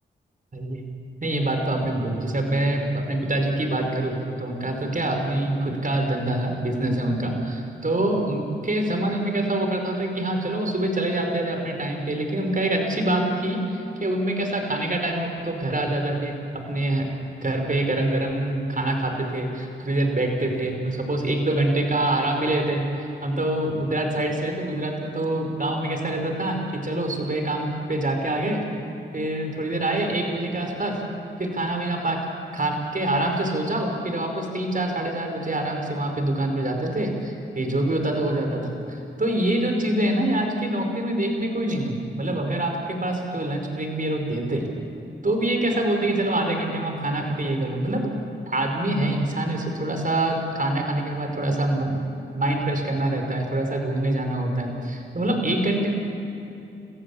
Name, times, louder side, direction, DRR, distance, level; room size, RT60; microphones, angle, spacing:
voice 1, 1.2-17.1 17.4-28.6 29.1-31.0 31.4-32.2 32.5-44.7 45.2-48.1 48.5-52.0 52.3-55.9, right 1 dB, 40° right, 3 dB, 5.2 m, -25 dB
26.0 x 15.5 x 8.6 m, 2.8 s
cardioid pair, 45°, 21 cm